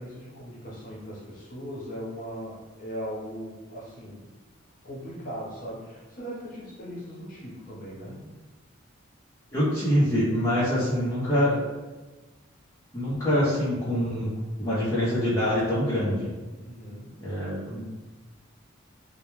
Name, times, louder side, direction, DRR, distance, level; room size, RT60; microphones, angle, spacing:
voice 1, 0.0-4.2 4.8-8.2 16.6-17.2, equal, 40° left, -6 dB, 0.8 m, -39 dB
voice 2, 9.5-11.6 12.9-14.3 14.6-16.3 17.2-17.8, equal, 15° left, -11 dB, 0.5 m, -25 dB
2.2 x 2.1 x 3.0 m, 1.2 s
head